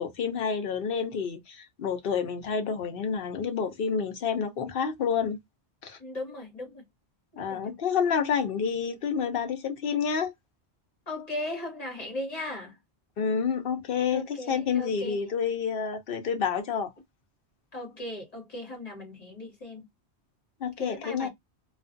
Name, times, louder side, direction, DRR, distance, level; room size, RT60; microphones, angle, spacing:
voice 1, 0.0-5.4 5.8-6.0 7.4-10.3 13.2-16.9 20.6-21.3, left 6 dB, 60° left, 0.8 m, -29 dB
voice 2, 6.0-6.8 7.3-7.7 11.1-12.8 14.1-15.2 17.7-19.9 20.8-21.3, left 1 dB, 35° left, 1.3 m, -37 dB
2.4 x 2.3 x 2.5 m
omnidirectional pair, 1.1 m